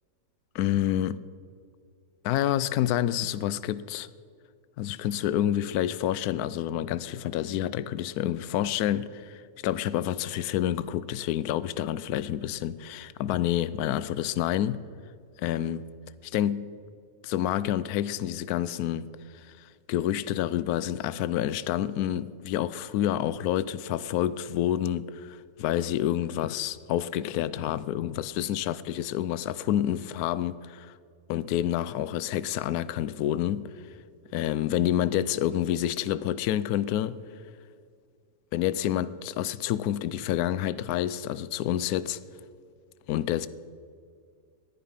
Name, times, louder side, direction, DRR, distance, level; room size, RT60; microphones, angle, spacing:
voice 1, 0.5-1.2 2.2-4.1 4.8-14.8 15.4-15.8 16.3-16.7 17.2-19.1 19.6-30.9 31.3-33.7 34.3-37.2 38.5-42.2 43.1-43.5, left 11 dB, 70° left, 1.0 m, -28 dB
19.5 x 10.5 x 5.7 m
omnidirectional pair, 1.8 m